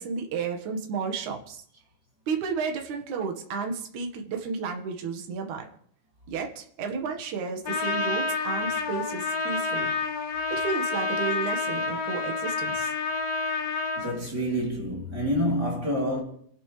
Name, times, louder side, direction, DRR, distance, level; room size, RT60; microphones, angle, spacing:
voice 1, 0.0-1.6 2.3-5.7 6.3-9.9 10.5-12.9, right 5 dB, 60° right, 2.8 m, -32 dB
Trumpet, 7.6-14.1, left 4 dB, 50° left, 2.5 m, -29 dB
voice 2, 14.0-16.2, equal, 25° right, 3.8 m, -27 dB
29.0 x 11.5 x 3.3 m
omnidirectional pair, 4.4 m